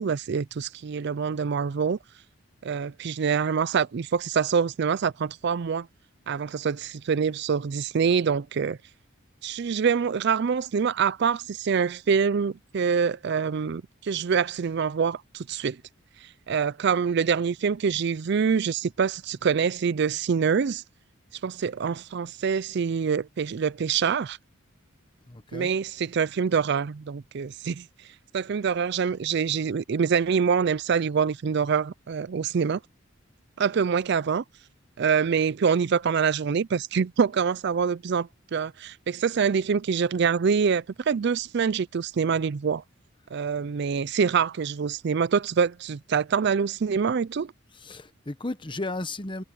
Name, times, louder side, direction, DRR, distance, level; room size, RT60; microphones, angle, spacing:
voice 1, 0.0-2.0 2.6-5.9 6.3-8.8 9.4-15.8 16.5-20.8 21.4-24.4 25.5-27.9 28.3-32.8 33.6-34.4 35.0-42.8 43.3-47.5, right 6 dB, 55° right, 0.4 m, -25 dB
voice 2, 25.3-25.7 47.7-49.4, left 2 dB, 25° left, 1.1 m, -34 dB
head